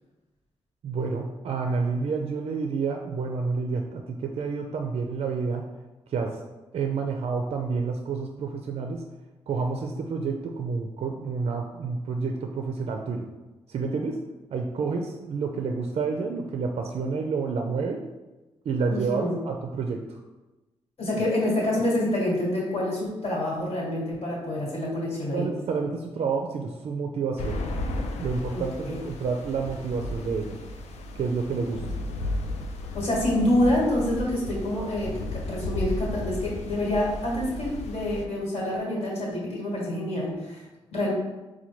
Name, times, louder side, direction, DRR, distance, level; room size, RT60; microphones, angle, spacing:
voice 1, 0.8-5.7 6.1-6.4 6.7-9.0 9.5-13.3 13.7-14.2 14.5-18.0 18.7-20.2 25.3-27.6 28.2-30.6 31.2-31.8, right 4 dB, 60° right, 3 dB, 0.4 m, -29 dB
voice 2, 18.9-19.4 21.0-25.5 28.5-29.0 32.9-41.1, left 1 dB, 65° left, -5 dB, 1.4 m, -27 dB
sound 1, 27.4-38.3, left 1 dB, 80° left, 0.4 m, -34 dB
4.3 x 2.2 x 3.0 m, 1.1 s
cardioid pair, 70°, 11 cm